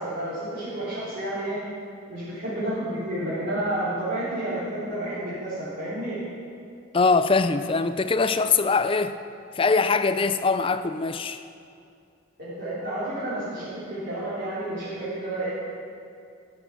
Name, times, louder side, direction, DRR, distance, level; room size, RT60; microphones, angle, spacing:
voice 1, 0.0-1.6 2.1-6.2 12.4-15.5, right 1 dB, 50° right, 3.3 m, -30 dB
voice 2, 6.9-9.2 9.6-11.4, left 4 dB, 25° left, 0.4 m, -22 dB
14.0 x 8.5 x 6.0 m
head